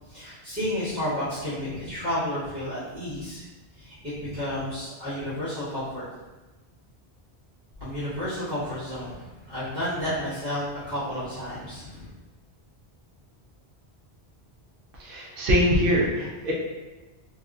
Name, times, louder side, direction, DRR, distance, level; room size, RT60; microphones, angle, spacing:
voice 1, 0.1-3.4 3.8-6.2 7.8-12.1, equal, 45° right, -14 dB, 1.5 m, -31 dB
voice 2, 15.0-16.5, equal, 60° right, -3 dB, 0.8 m, -23 dB
3.0 x 2.8 x 2.4 m, 1.2 s
omnidirectional pair, 1.1 m